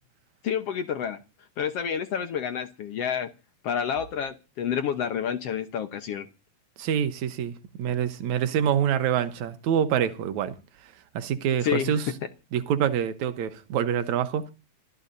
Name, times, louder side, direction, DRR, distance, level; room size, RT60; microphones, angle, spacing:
voice 1, 0.4-1.2 1.6-3.3 3.6-6.3 11.6-11.9, left 8 dB, 70° left, 1.5 m, -29 dB
voice 2, 6.8-10.6 11.1-12.1 12.5-14.5, right 9 dB, 65° right, 2.1 m, -26 dB
27.5 x 13.0 x 2.7 m
omnidirectional pair, 4.1 m